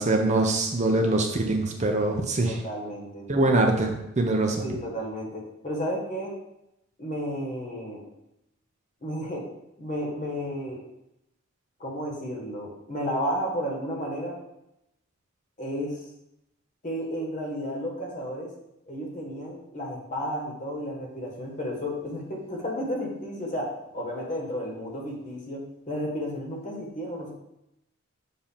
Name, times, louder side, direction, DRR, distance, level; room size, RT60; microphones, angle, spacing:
voice 1, 0.0-2.6 3.3-4.7, right 2 dB, 35° right, 2 dB, 0.6 m, -23 dB
voice 2, 2.4-3.3 4.6-6.3 7.0-8.0 9.0-9.5 9.8-10.8 11.8-14.4 15.6-16.0 16.8-18.5 18.9-27.3, equal, 35° left, -1 dB, 1.4 m, -32 dB
6.9 x 2.8 x 5.6 m, 0.85 s
head